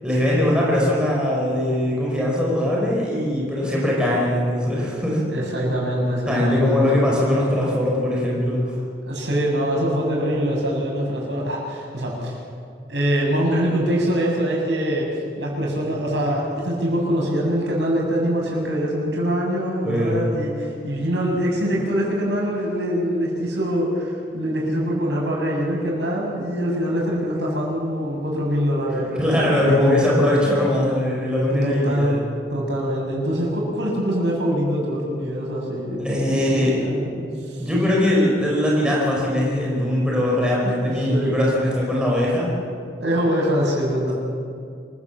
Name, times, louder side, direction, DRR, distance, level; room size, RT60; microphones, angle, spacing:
voice 1, 0.0-5.2 6.3-8.8 19.8-20.2 29.0-32.2 36.0-36.7 37.6-42.5, left 1 dB, 5° right, -4 dB, 5.0 m, -21 dB
voice 2, 5.3-6.9 9.1-12.4 12.9-29.8 31.5-32.2 32.5-37.7 40.6-41.4 43.0-44.1, equal, 85° right, -2 dB, 6.9 m, -24 dB
26.5 x 16.0 x 7.4 m, 2.3 s
head